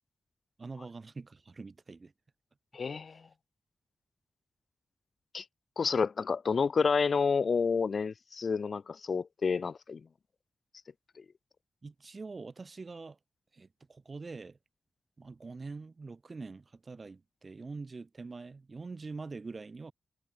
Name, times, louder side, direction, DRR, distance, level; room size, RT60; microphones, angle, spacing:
voice 1, 0.6-2.1 11.8-13.2 13.5-14.6 15.2-19.9, right 4 dB, 40° right, 2.6 m, -44 dB
voice 2, 2.7-3.3 5.3-5.4 5.8-10.1 11.2-11.3, left 5 dB, 60° left, 0.9 m, -29 dB
wide cardioid pair, 95°, 0 cm